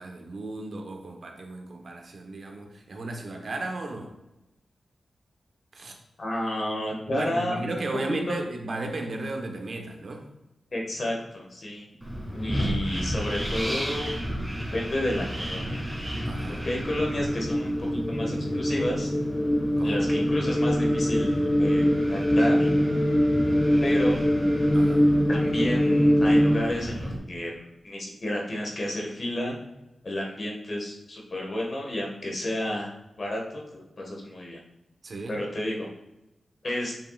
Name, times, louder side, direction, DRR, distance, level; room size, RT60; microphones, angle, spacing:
voice 1, 0.0-4.1 5.7-5.9 7.1-10.2 16.2-16.6 19.8-20.3 24.7-25.1 35.0-35.4, right 2 dB, 60° right, 3 dB, 1.1 m, -35 dB
voice 2, 6.2-7.8 8.1-8.4 10.7-11.8 12.3-14.2 14.7-15.9 16.5-19.1 19.8-22.7 23.8-24.2 25.3-29.6 30.0-32.9 33.2-34.6 35.3-35.9 36.6-36.9, left 1 dB, 50° left, -1 dB, 1.6 m, -31 dB
Wind, 12.0-27.2, equal, 5° right, 2.1 m, -33 dB
sound 1, 16.0-26.6, equal, 25° left, 0.4 m, -23 dB
7.3 x 5.7 x 2.4 m, 0.94 s
cardioid pair, 75°, 0 cm